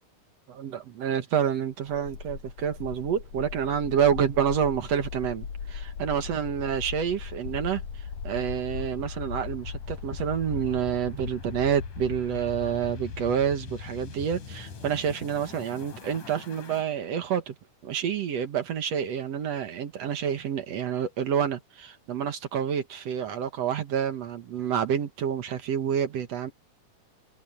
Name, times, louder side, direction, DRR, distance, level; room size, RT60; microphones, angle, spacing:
voice 1, 0.5-17.6 17.8-26.5, right 8 dB, 65° right, 2.4 m, -28 dB
sound 1, 1.9-16.8, left 6 dB, 85° left, 4.6 m, -38 dB
omnidirectional pair, 3.4 m